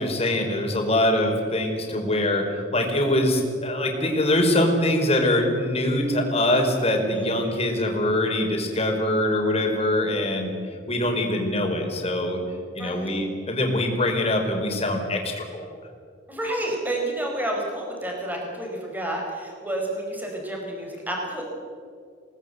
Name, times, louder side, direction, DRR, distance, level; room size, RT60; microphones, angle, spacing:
voice 1, 0.0-2.4 2.7-10.5 10.9-12.4 12.7-15.7, left 1 dB, 35° left, 2 dB, 4.8 m, -23 dB
voice 2, 7.1-7.5 12.8-13.3 16.3-21.5, right 1 dB, 10° right, 0 dB, 5.1 m, -30 dB
29.0 x 19.0 x 8.1 m, 2.3 s
head